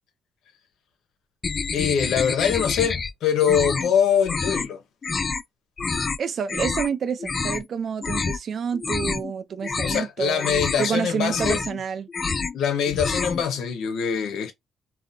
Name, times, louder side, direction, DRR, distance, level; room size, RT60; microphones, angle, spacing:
sound 1, 1.4-3.1 3.4-3.9 4.2-4.7 5.0-5.4 5.8-6.2 6.5-6.9 7.2-7.7 8.0-8.4 8.7-9.3 9.6-10.1 10.4-10.9 11.2-11.8 12.1-12.6 12.9-13.4, left 4 dB, 35° left, 0.3 m, -27 dB
voice 1, 1.7-4.8 9.8-11.6 12.5-14.5, left 8 dB, 80° left, 0.6 m, -23 dB
voice 2, 6.2-10.5 10.8-12.1, right 7 dB, 55° right, 0.5 m, -28 dB
2.7 x 2.1 x 2.5 m
cardioid pair, 90°, 0 cm